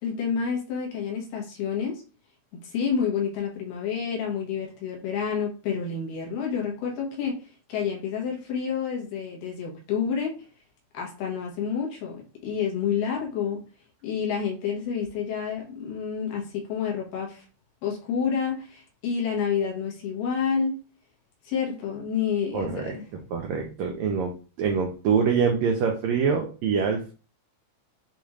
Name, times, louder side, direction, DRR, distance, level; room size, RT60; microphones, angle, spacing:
voice 1, 0.0-2.0 2.6-10.4 10.9-13.6 14.0-17.4 17.8-20.7 21.5-23.0, left 6 dB, 80° left, -2 dB, 2.9 m, -29 dB
voice 2, 22.5-23.0 23.3-24.3 24.6-27.1, right 6 dB, 90° right, 2 dB, 1.6 m, -25 dB
6.8 x 2.4 x 3.1 m, 0.37 s
omnidirectional pair, 3.8 m